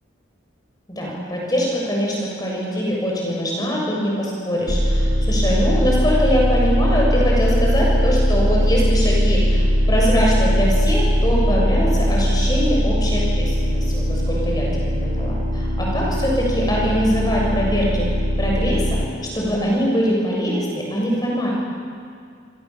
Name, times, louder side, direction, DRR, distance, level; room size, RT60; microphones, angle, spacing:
voice 1, 0.9-18.0 18.4-19.0 19.3-21.5, equal, 20° left, -3 dB, 6.7 m, -23 dB
sound 1, 4.7-19.1, equal, 45° right, 3.1 m, -20 dB
28.0 x 27.0 x 7.3 m, 2.2 s
head